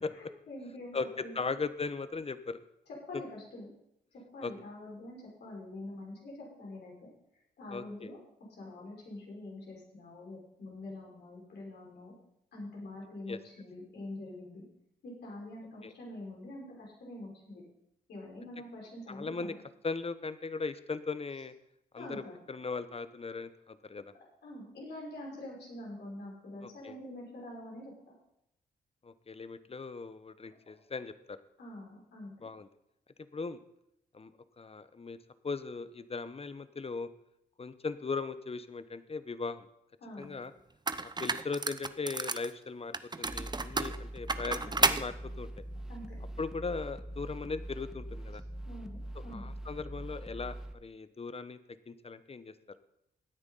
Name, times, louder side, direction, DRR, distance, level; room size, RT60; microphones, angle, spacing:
voice 1, 0.1-1.3 3.1-3.7 4.1-7.1 7.6-8.2 8.6-12.1 12.5-14.6 15.0-17.6 18.1-19.5 22.0-22.3 24.4-27.9 31.6-32.5 40.0-40.4 44.5-44.7 45.9-46.2 48.7-49.0 49.2-49.5, left 1 dB, 70° left, -3 dB, 5.4 m, -45 dB
voice 2, 0.9-2.6 4.4-4.5 7.7-8.1 13.3-13.4 15.8-15.9 19.1-19.5 19.8-21.5 21.9-24.1 26.6-26.9 29.0-31.4 32.4-32.7 33.3-33.6 34.1-35.2 35.4-37.1 37.6-39.7 40.2-40.5 41.2-45.5 46.4-48.4 49.3-51.6 51.9-52.5, left 4 dB, 35° left, 13 dB, 1.0 m, -38 dB
sound 1, 40.2-40.3 40.9-42.5 42.9-45.0, right 3 dB, 25° right, 0.8 m, -31 dB
sound 2, 43.2-50.7, right 1 dB, 5° right, 1.6 m, -43 dB
17.0 x 9.6 x 4.1 m, 0.78 s
hypercardioid pair, 40°, 18 cm